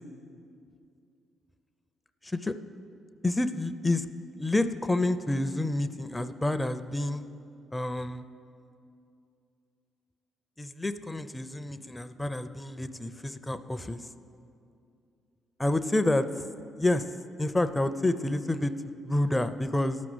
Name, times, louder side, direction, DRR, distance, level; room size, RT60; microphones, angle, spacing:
voice 1, 2.2-2.5 3.2-4.1 4.4-7.2 7.7-8.2 10.6-14.1 15.6-16.3 16.8-17.1 17.4-20.0, left 2 dB, 10° left, 11 dB, 0.5 m, -28 dB
12.5 x 6.2 x 7.8 m, 2.5 s
cardioid pair, 90°, 0 cm